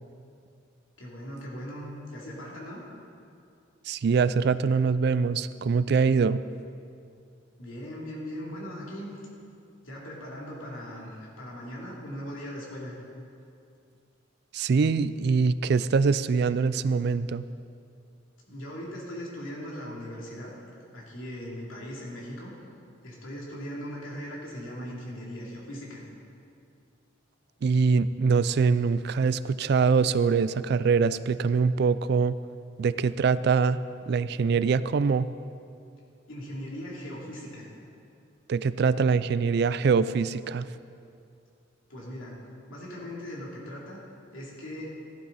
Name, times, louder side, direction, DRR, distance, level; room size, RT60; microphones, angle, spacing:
voice 1, 1.0-2.8 7.6-9.1 9.8-12.9 18.5-20.5 20.9-22.5 23.0-26.0 36.3-37.7 41.9-42.4 42.7-44.0 44.3-44.9, equal, 85° left, -4 dB, 3.0 m, -39 dB
voice 2, 3.9-6.4 14.5-17.4 27.6-32.4 32.8-33.8 34.1-35.3 38.5-40.7, right 5 dB, 55° right, 15 dB, 0.3 m, -23 dB
15.0 x 11.5 x 4.1 m, 2.5 s
head